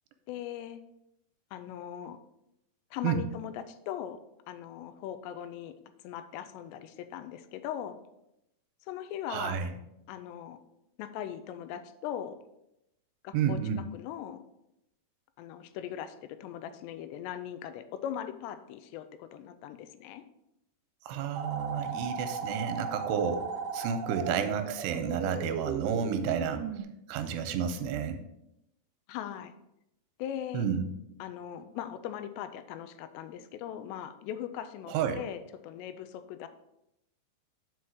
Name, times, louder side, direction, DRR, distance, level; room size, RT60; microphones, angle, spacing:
voice 1, 0.3-0.8 1.5-2.2 2.9-4.2 4.5-5.7 6.0-8.0 8.9-9.6 10.1-10.6 11.0-12.4 13.2-13.6 13.9-14.4 15.4-20.2 29.1-29.5 30.2-30.6 31.2-36.5, left 10 dB, 90° left, 10 dB, 2.8 m, -39 dB
voice 2, 9.3-9.7 13.3-13.8 21.1-26.8 27.1-28.2 30.5-30.9 34.9-35.2, right 7 dB, 85° right, 7 dB, 2.8 m, -31 dB
sound 1, 21.3-26.8, right 6 dB, 70° right, 2.0 m, -36 dB
5.9 x 5.6 x 6.4 m, 0.84 s
omnidirectional pair, 4.8 m